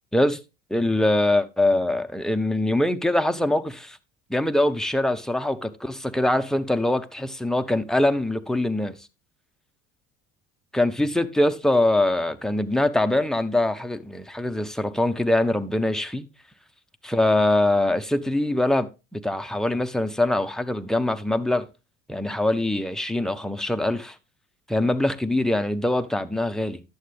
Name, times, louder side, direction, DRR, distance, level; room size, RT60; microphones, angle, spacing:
voice 1, 0.7-4.0 4.3-9.0 10.7-16.3 17.1-21.6 22.1-24.2 24.7-26.8, left 1 dB, ahead, 0.9 m, -23 dB
11.0 x 7.9 x 3.4 m
hypercardioid pair, 70°, 37 cm